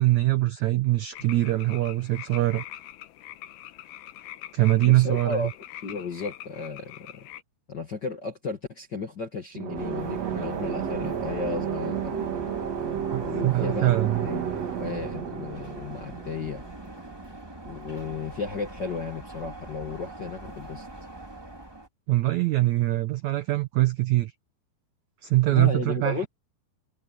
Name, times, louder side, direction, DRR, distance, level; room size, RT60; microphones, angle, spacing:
voice 1, 0.0-2.6 4.5-5.5 13.1-14.3 22.1-24.3 25.2-26.3, right 17 dB, 85° right, 1.6 m, -23 dB
sound 1, 1.1-7.4, left 13 dB, 75° left, 3.0 m, -43 dB
voice 2, 4.8-5.5 5.8-7.3 7.7-12.2 13.2-14.4 14.7-16.6 17.6-20.9 25.5-26.3, left 4 dB, 50° left, 1.3 m, -34 dB
sound 2, 9.5-17.2, right 8 dB, 50° right, 2.4 m, -32 dB
sound 3, 9.7-21.9, right 1 dB, 5° right, 2.5 m, -42 dB
omnidirectional pair, 4.5 m